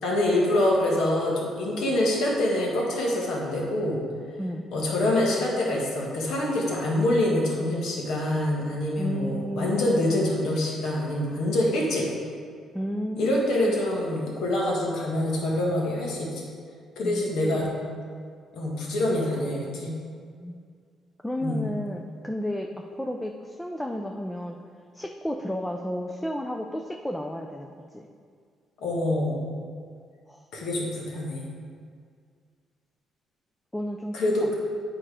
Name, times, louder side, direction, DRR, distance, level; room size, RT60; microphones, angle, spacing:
voice 1, 0.0-4.0 4.7-12.1 13.2-16.3 16.9-17.7 18.5-19.9 21.4-21.7 28.8-29.5 30.5-31.4 34.1-34.5, left 1 dB, 75° left, -2 dB, 1.7 m, -25 dB
voice 2, 9.0-9.8 12.7-13.8 17.0-17.7 20.4-20.6 21.2-24.6 24.9-28.1 30.3-30.4 33.7-34.5, equal, 5° left, 2 dB, 0.4 m, -32 dB
8.8 x 4.3 x 4.9 m, 2.1 s
cardioid pair, 135°, 0 cm